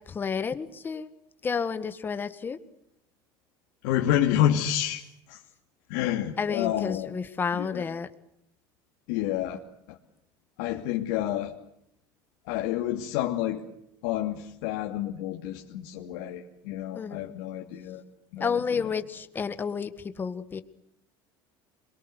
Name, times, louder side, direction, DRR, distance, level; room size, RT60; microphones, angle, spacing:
voice 1, 0.1-1.1 1.4-2.6 6.4-8.1 16.9-17.4 18.4-20.6, left 6 dB, 20° left, 11 dB, 1.7 m, -31 dB
voice 2, 3.8-5.4 5.9-7.2 7.5-7.8 9.1-9.6 9.9-10.0 10.6-11.5 12.4-13.6 14.0-18.0 18.3-18.9, left 12 dB, 90° left, 0 dB, 2.8 m, -29 dB
27.5 x 23.5 x 8.2 m, 0.76 s
cardioid pair, 160°, 10 cm